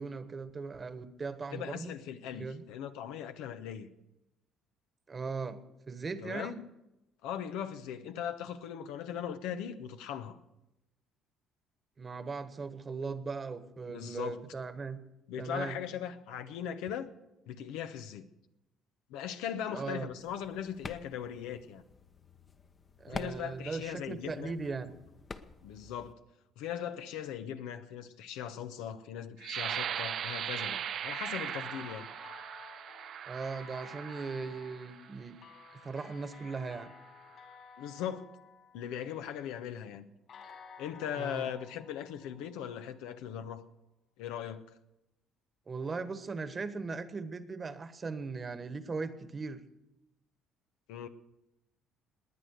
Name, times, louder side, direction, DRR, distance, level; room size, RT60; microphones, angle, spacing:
voice 1, 0.0-1.9 2.3-2.6 5.1-5.6 5.9-6.6 12.0-15.0 15.4-15.8 19.7-20.1 23.0-24.9 33.3-35.4 35.7-36.9 41.2-41.5 45.7-49.6, right 4 dB, 30° right, 1.3 m, -38 dB
voice 2, 1.5-3.9 6.2-6.6 7.2-10.4 13.9-14.4 15.3-17.1 17.5-18.3 19.1-21.8 23.1-24.6 25.6-26.2 26.6-32.1 37.8-38.3 38.7-40.1 40.8-43.6 44.2-44.6 50.9-51.1, left 9 dB, 85° left, 1.0 m, -39 dB
sound 1, 20.2-26.1, left 4 dB, 35° left, 1.0 m, -48 dB
sound 2, 29.4-35.1 35.7-35.9 36.4-36.8, right 9 dB, 60° right, 0.7 m, -39 dB
sound 3, 30.3-39.5 40.3-43.2, left 6 dB, 60° left, 4.0 m, -54 dB
19.5 x 9.5 x 6.5 m
supercardioid pair, 80°, 0 cm